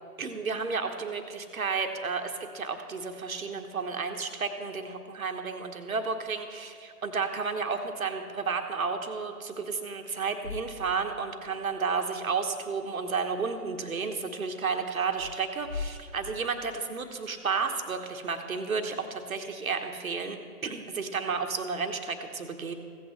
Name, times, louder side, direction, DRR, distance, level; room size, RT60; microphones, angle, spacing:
voice 1, 0.2-20.4 20.6-22.7, right 5 dB, 65° right, 6 dB, 1.2 m, -32 dB
sound 1, 10.4-11.4 11.7-11.8 15.0-17.1, left 4 dB, 70° left, 2.9 m, -41 dB
16.0 x 8.5 x 3.2 m, 2.4 s
figure-of-eight pair, 145°, 45 cm